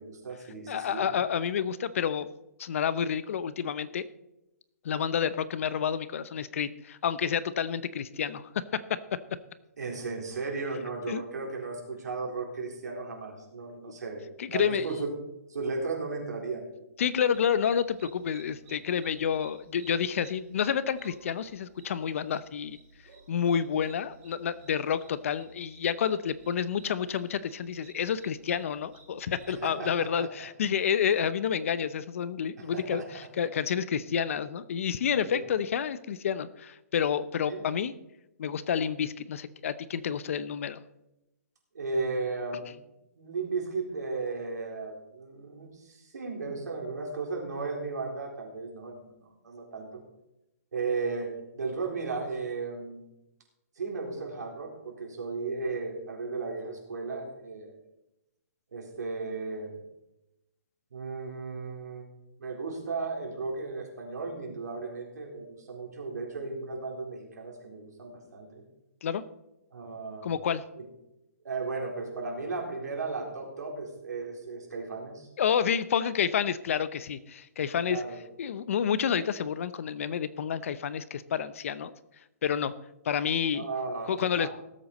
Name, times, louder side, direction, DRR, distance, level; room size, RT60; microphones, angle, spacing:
voice 1, 0.0-1.1 9.8-15.1 15.5-16.7 29.5-30.5 32.7-33.1 35.2-35.4 37.5-37.7 41.7-42.7 43.2-50.0 50.7-53.0 53.8-57.7 58.7-59.8 60.9-62.1 62.4-68.6 69.7-70.3 70.8-70.9 71.4-75.3 77.9-78.2 83.5-84.5, right 4 dB, 85° right, 0 dB, 4.1 m, -35 dB
voice 2, 0.7-2.3 2.6-4.1 4.8-8.8 11.1-11.2 14.4-14.9 17.0-22.8 23.3-37.9 38.4-40.8 69.0-69.2 70.2-70.6 75.4-78.0 78.4-81.9 82.4-82.7 83.0-83.6 84.0-84.5, left 8 dB, 50° left, 15 dB, 0.7 m, -29 dB
sound 1, 17.3-29.6, right 3 dB, 35° right, 4.3 m, -56 dB
18.5 x 8.2 x 4.1 m, 0.91 s
hypercardioid pair, 160°, 9 cm